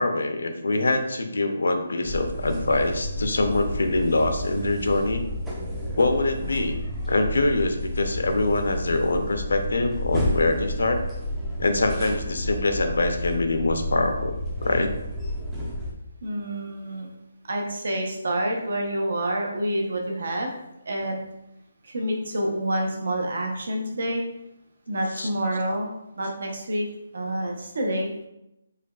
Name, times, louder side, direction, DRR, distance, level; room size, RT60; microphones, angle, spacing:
voice 1, 0.0-5.2 6.0-6.8 7.1-11.0 11.6-14.4 14.6-14.9 25.2-25.3, left 2 dB, 80° left, 6 dB, 0.5 m, -24 dB
sound 1, 2.0-15.9, left 1 dB, 5° right, 0.4 m, -31 dB
voice 2, 16.2-17.1 17.4-20.5 20.9-21.2 21.8-24.2 24.9-25.9 26.2-26.9 27.1-28.1, right 1 dB, 60° right, 1 dB, 0.7 m, -27 dB
4.8 x 2.3 x 2.3 m, 0.86 s
hypercardioid pair, 170°, 0 cm